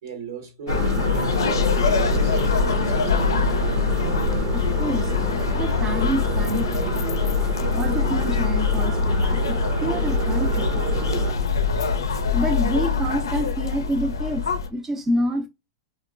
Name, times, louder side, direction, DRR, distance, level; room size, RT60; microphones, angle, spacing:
voice 1, 0.0-3.4, right 4 dB, 75° right, 1.2 m, -38 dB
sound 1, 0.7-14.7, left 5 dB, 90° left, 0.4 m, -23 dB
sound 2, 0.7-11.3, right 4 dB, 45° right, 0.7 m, -31 dB
voice 2, 4.5-5.1 5.5-7.2 7.7-9.6 9.8-10.8 12.3-14.4 14.7-15.5, right 1 dB, 15° right, 0.4 m, -27 dB
2.9 x 2.2 x 2.3 m
hypercardioid pair, 115°, 2 cm